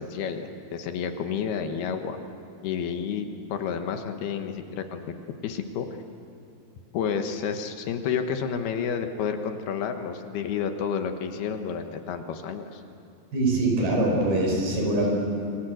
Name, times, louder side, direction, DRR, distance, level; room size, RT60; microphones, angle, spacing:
voice 1, 0.0-2.2 2.6-5.1 5.4-5.9 6.9-12.8, left 7 dB, 70° left, 6 dB, 3.2 m, -30 dB
voice 2, 13.3-15.1, right 2 dB, 65° right, 0 dB, 7.1 m, -23 dB
28.5 x 23.5 x 7.9 m, 2.6 s
omnidirectional pair, 4.8 m